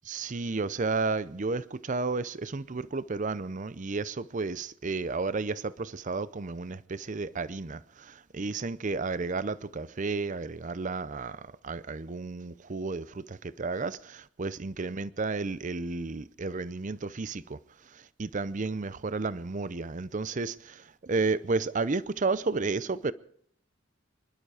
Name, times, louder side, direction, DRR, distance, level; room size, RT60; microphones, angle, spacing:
voice 1, 0.1-23.1, right 3 dB, 40° right, 0.6 m, -32 dB
25.0 x 11.5 x 4.9 m
head